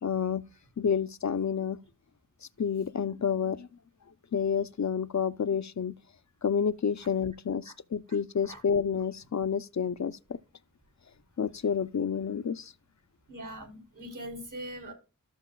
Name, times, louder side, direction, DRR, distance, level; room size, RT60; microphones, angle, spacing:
voice 1, 0.0-0.4 0.8-1.8 2.6-3.7 4.3-5.9 6.4-10.4 11.4-12.7, left 7 dB, 55° left, 0.5 m, -29 dB
voice 2, 13.3-14.9, equal, 65° right, 3.9 m, -41 dB
14.0 x 6.5 x 2.2 m
wide cardioid pair, 55°, 33 cm